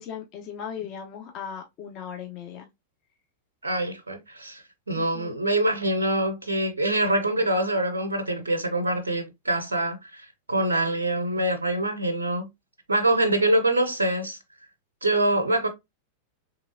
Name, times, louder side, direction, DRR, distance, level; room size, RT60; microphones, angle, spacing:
voice 1, 0.0-2.7 4.9-5.4, left 8 dB, 40° left, 0.6 m, -38 dB
voice 2, 3.6-12.5 12.9-14.4 15.0-15.7, right 1 dB, 75° right, 0.6 m, -25 dB
3.3 x 2.9 x 2.6 m
figure-of-eight pair, 90°, 0 cm